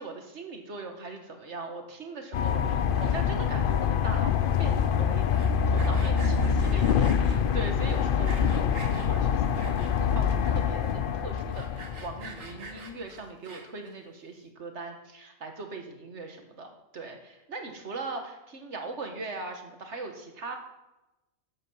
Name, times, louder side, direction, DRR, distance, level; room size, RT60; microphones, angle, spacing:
voice 1, 0.0-20.6, right 3 dB, 60° right, 4 dB, 1.9 m, -40 dB
sound 1, 2.3-12.6, left 7 dB, 55° left, 0.7 m, -25 dB
Sawing, 5.2-7.4 7.9-9.1 9.6-10.2 10.6-10.7 10.9-11.0 11.4-13.9, right 4 dB, 85° right, 1.8 m, -45 dB
13.0 x 8.2 x 5.7 m, 0.98 s
omnidirectional pair, 1.3 m